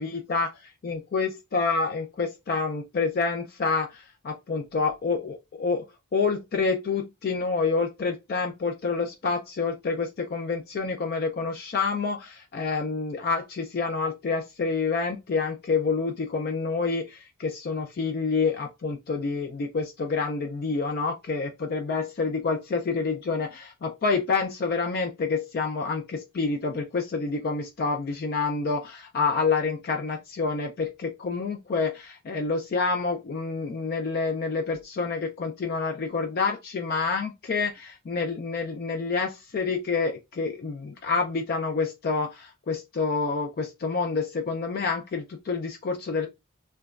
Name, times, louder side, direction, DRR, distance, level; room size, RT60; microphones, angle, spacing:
voice 1, 0.0-0.5 0.8-5.9 6.1-46.3, left 4 dB, 45° left, 0.3 m, -28 dB
2.9 x 2.2 x 2.3 m
head